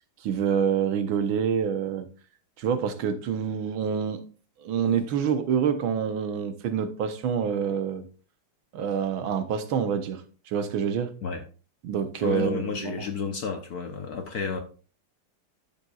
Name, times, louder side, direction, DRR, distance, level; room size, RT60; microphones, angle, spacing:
voice 1, 0.2-2.1 2.6-4.2 4.6-8.0 8.7-11.1 11.8-13.0, right 7 dB, 75° right, 1.6 m, -27 dB
voice 2, 12.2-14.6, left 5 dB, 60° left, 1.0 m, -31 dB
12.0 x 7.2 x 2.4 m
omnidirectional pair, 2.4 m